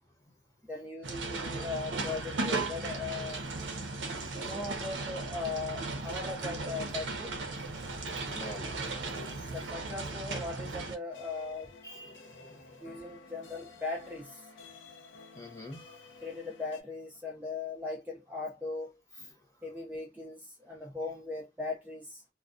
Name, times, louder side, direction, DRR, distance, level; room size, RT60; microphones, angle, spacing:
voice 1, 0.6-3.4 4.3-7.4 9.5-11.7 12.8-14.5 16.2-19.0 19.6-22.2, left 3 dB, 10° right, 0.5 m, -39 dB
sound 1, 1.0-10.9, right 3 dB, 75° right, 0.6 m, -36 dB
voice 2, 8.1-9.5 11.8-13.0 15.3-16.0 19.2-19.3, left 1 dB, 20° left, 0.9 m, -48 dB
sound 2, 11.1-16.8, left 4 dB, 75° left, 0.7 m, -52 dB
2.2 x 2.2 x 2.4 m
head